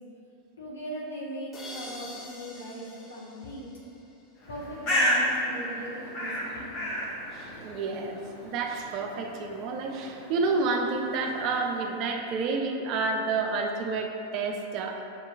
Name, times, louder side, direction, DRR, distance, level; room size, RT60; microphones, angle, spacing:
voice 1, 0.6-3.7 4.5-6.8, equal, 70° left, -5 dB, 0.9 m, -39 dB
sound 1, 1.5-4.4, left 1 dB, 25° left, 0.6 m, -45 dB
Bird, 4.4-12.0, equal, 45° left, 1.0 m, -33 dB
voice 2, 7.3-8.2 8.4-15.0, right 3 dB, 40° right, 3 dB, 0.4 m, -29 dB
6.4 x 2.9 x 2.3 m, 2.9 s
figure-of-eight pair, 90°, 0 cm